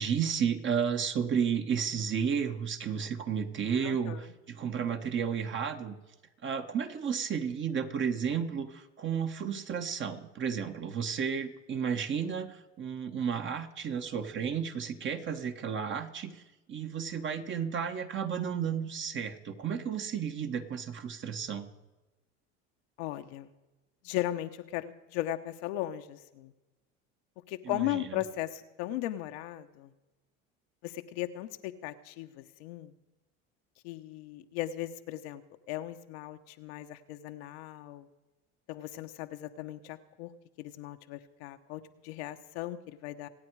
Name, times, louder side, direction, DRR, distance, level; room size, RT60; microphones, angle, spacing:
voice 1, 0.0-6.0 6.4-16.4 16.7-21.7 27.6-28.2, right 7 dB, 35° right, 7 dB, 1.5 m, -32 dB
voice 2, 3.8-4.2 23.0-23.5 24.0-26.5 27.5-29.9 30.8-32.9 33.8-35.4 35.7-38.1 38.7-40.3 40.6-43.3, left 14 dB, 80° left, 7 dB, 1.1 m, -37 dB
26.0 x 8.9 x 4.8 m, 1.1 s
supercardioid pair, 105°, 32 cm